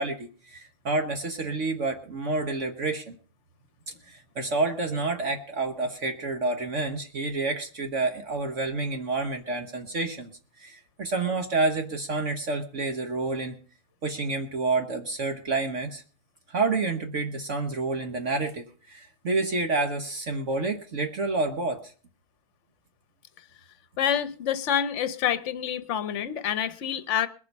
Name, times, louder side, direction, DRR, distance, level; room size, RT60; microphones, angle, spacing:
voice 1, 0.0-3.2 4.1-10.3 10.6-13.6 14.0-16.0 16.5-21.9, right 3 dB, 55° right, 6 dB, 1.4 m, -29 dB
voice 2, 24.0-27.3, left 9 dB, 55° left, 14 dB, 1.1 m, -27 dB
21.0 x 7.4 x 5.4 m, 0.40 s
omnidirectional pair, 1.6 m